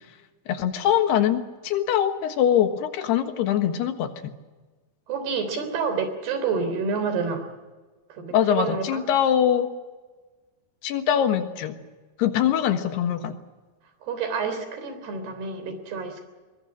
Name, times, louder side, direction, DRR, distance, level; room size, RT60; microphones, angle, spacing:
voice 1, 0.5-4.3 8.3-9.7 10.8-11.8 12.2-13.4, left 9 dB, 85° left, 8 dB, 3.5 m, -23 dB
voice 2, 5.1-7.5 8.1-9.0 14.0-16.3, right 5 dB, 80° right, 8 dB, 5.5 m, -28 dB
22.5 x 21.5 x 7.4 m, 1.3 s
omnidirectional pair, 4.6 m